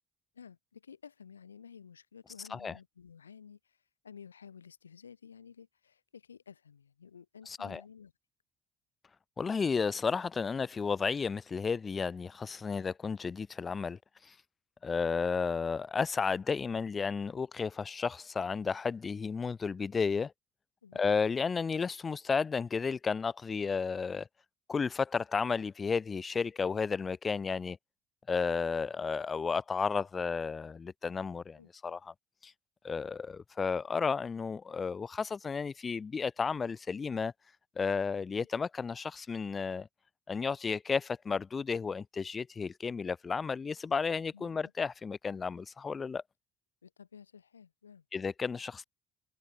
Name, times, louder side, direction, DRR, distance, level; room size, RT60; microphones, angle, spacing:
voice 1, 0.3-3.8 4.0-8.1 20.8-21.0 31.6-31.7 44.3-44.7 46.8-48.0, left 7 dB, 85° left, 0.9 m, -53 dB
voice 2, 7.5-7.8 9.4-14.0 14.3-14.4 14.8-20.3 20.9-24.3 24.7-27.8 28.3-32.1 32.4-32.5 32.8-37.3 37.8-39.9 40.3-46.2 48.1-48.8, left 5 dB, 30° left, 0.3 m, -33 dB
figure-of-eight pair, 55°, 0 cm